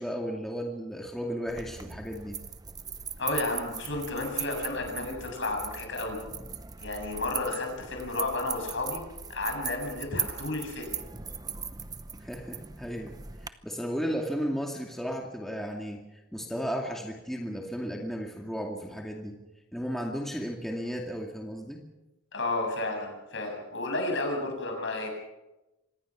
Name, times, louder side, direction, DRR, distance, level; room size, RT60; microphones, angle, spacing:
voice 1, 0.0-2.4 12.2-13.1 13.4-19.4 19.7-21.8, equal, ahead, 0 dB, 2.2 m, -34 dB
sound 1, 1.5-13.5, right 6 dB, 20° right, 0.8 m, -39 dB
voice 2, 3.2-6.2 6.8-11.0 22.3-25.1, left 2 dB, 60° left, 3 dB, 7.5 m, -32 dB
26.0 x 20.0 x 6.2 m, 0.99 s
head